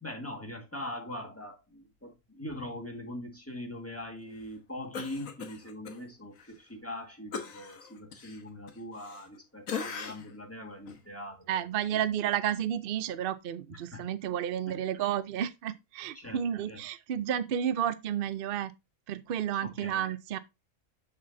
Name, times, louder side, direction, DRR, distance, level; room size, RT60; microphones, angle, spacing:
voice 1, 0.0-11.5 11.9-12.0 13.7-14.1 16.1-16.4 16.7-16.8 19.6-20.1, left 1 dB, 10° left, 1.7 m, -42 dB
Cough, 4.9-6.0 6.4-6.5 7.3-9.4 9.7-10.4 10.9-11.0, left 6 dB, 70° left, 1.5 m, -39 dB
voice 2, 11.5-18.7 19.1-20.4, right 10 dB, 60° right, 0.6 m, -31 dB
6.8 x 6.7 x 2.7 m
omnidirectional pair, 1.5 m